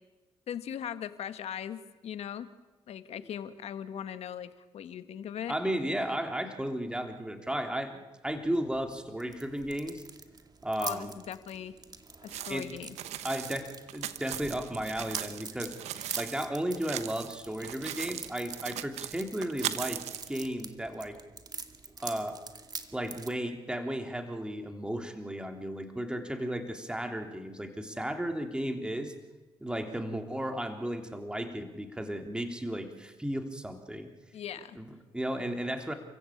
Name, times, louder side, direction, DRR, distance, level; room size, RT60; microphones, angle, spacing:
voice 1, 0.5-2.5 2.9-5.6 10.8-11.8 12.2-13.0 34.3-34.8, left 9 dB, 70° left, 11 dB, 1.6 m, -39 dB
voice 2, 5.5-10.0 10.6-11.1 12.5-12.7 13.2-15.7 16.2-21.2 22.0-22.4 22.9-29.1 29.6-34.1 34.7-35.9, right 1 dB, 10° right, 5 dB, 3.3 m, -34 dB
sound 1, 8.3-23.3, right 4 dB, 35° right, 2.1 m, -46 dB
sound 2, 12.3-16.4 16.7-17.3 17.6-20.3, right 12 dB, 80° right, 1.1 m, -38 dB
29.5 x 15.5 x 8.6 m, 1.2 s
supercardioid pair, 65°, 11 cm